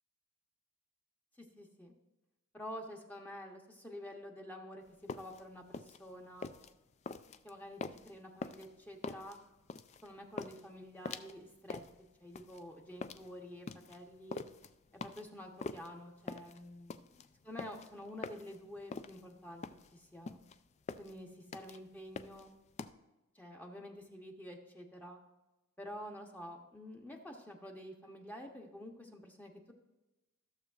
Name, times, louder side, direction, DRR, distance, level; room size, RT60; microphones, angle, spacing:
voice 1, 1.4-1.9 2.5-4.8 5.1-6.5 7.4-9.4 10.0-11.8 12.2-14.4 15.0-19.6 19.9-20.4 21.0-22.5 23.3-25.2 25.8-29.7, equal, 10° left, 1 dB, 0.9 m, -49 dB
sound 1, 4.9-22.9, left 4 dB, 30° left, 0.3 m, -45 dB
14.5 x 6.8 x 2.4 m, 1.0 s
head